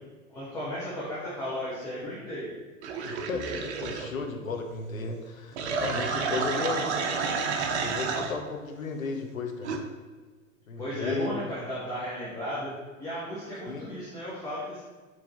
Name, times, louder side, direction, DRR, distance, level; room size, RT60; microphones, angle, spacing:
voice 1, 0.3-2.5 6.0-7.1 10.8-12.7 13.0-14.8, equal, 10° left, -9 dB, 0.5 m, -35 dB
sound 1, 2.8-4.1 5.5-8.4 9.6-9.8, right 5 dB, 55° right, 0.5 m, -30 dB
voice 2, 3.0-6.8 7.8-9.8 10.7-11.4 13.7-13.9, left 4 dB, 80° left, 4 dB, 0.6 m, -34 dB
4.5 x 2.8 x 2.3 m, 1.4 s
figure-of-eight pair, 90°, 40 cm